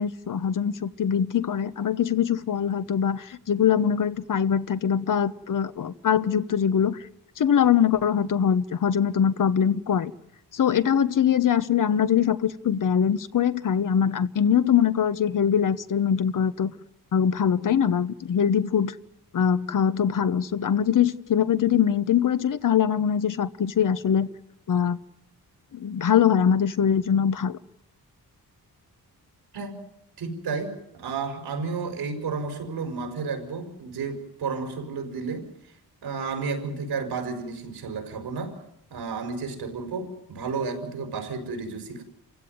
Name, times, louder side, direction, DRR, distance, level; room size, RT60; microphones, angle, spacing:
voice 1, 0.0-7.0 7.4-10.1 10.5-16.7 17.1-18.9 19.3-24.3 24.7-25.0 25.7-27.6, left 8 dB, 55° left, 13 dB, 1.1 m, -23 dB
voice 2, 30.2-35.5 36.0-38.6 38.9-42.0, right 4 dB, 85° right, 5 dB, 5.4 m, -32 dB
28.0 x 16.0 x 9.4 m, 0.82 s
cardioid pair, 90°, 38 cm